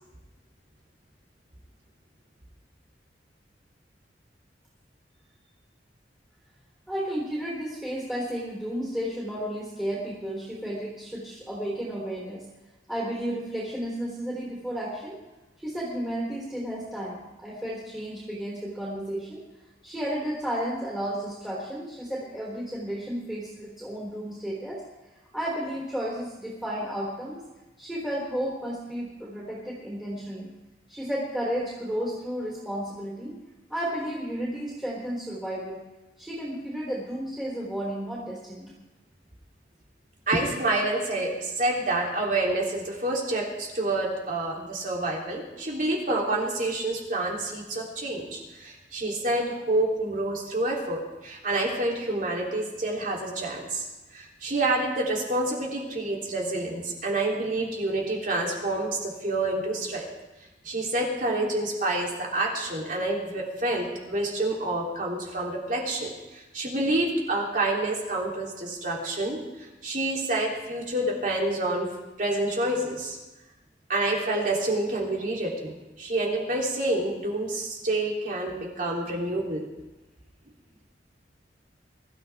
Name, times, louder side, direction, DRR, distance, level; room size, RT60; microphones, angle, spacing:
voice 1, 6.9-12.4 12.9-15.2 15.6-19.4 19.8-24.8 25.3-27.4 27.8-30.5 30.9-33.4 33.7-35.8 36.2-38.7 79.1-79.2, equal, ahead, -6 dB, 3.8 m, -32 dB
voice 2, 40.3-53.9 54.1-60.1 60.6-71.9 72.2-73.2 73.9-79.7, right 2 dB, 50° right, -2 dB, 3.4 m, -28 dB
23.5 x 13.5 x 3.6 m, 1.1 s
head